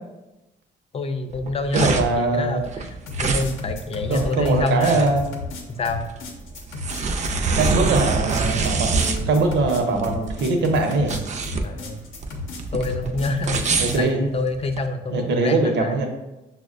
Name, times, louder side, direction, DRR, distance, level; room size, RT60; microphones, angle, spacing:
voice 1, 0.9-3.0 3.2-5.2 5.7-6.1 11.6-12.0 12.7-16.0, left 3 dB, 30° left, 7 dB, 0.4 m, -27 dB
sound 1, 1.3-14.8, right 4 dB, 35° right, 0.4 m, -25 dB
voice 2, 1.7-2.6 4.1-5.2 7.6-11.2 13.8-14.3 15.1-16.1, right 3 dB, 65° right, 3 dB, 0.7 m, -22 dB
sound 2, 3.1-14.1, left 3 dB, 85° left, 0.6 m, -34 dB
5.8 x 2.1 x 2.4 m, 0.98 s
cardioid pair, 90°, 20 cm